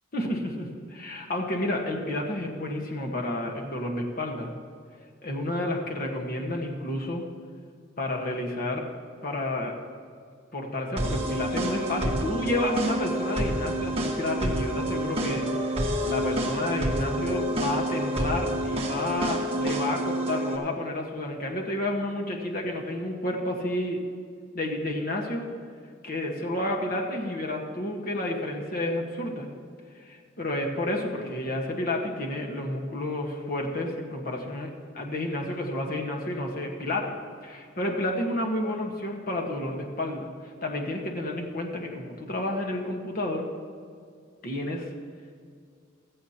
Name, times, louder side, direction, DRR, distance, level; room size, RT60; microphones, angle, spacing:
voice 1, 0.1-4.5 5.2-7.2 8.0-8.8 9.2-9.7 10.5-24.0 24.5-25.5 26.0-29.5 30.0-34.7 34.9-37.1 37.4-40.3 40.6-43.5 44.4-44.9, left 1 dB, 45° left, 1 dB, 1.4 m, -30 dB
sound 1, 11.0-20.6, right 1 dB, 30° right, 1.5 m, -28 dB
15.5 x 14.0 x 2.9 m, 2.2 s
head